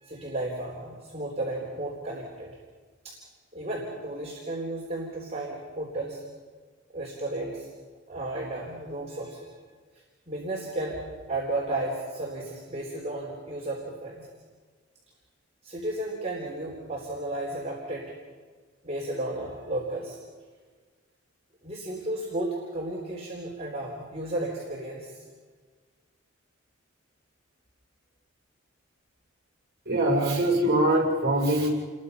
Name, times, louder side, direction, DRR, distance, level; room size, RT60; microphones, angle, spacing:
voice 1, 0.0-2.5 3.0-3.2 3.5-6.2 6.9-7.7 8.1-9.6 10.3-14.3 15.6-18.1 18.8-20.2 21.6-25.1, right 1 dB, 35° right, -3 dB, 3.7 m, -33 dB
voice 2, 29.9-31.7, right 1 dB, 55° right, -2 dB, 6.5 m, -23 dB
29.5 x 21.5 x 5.5 m, 1.5 s
head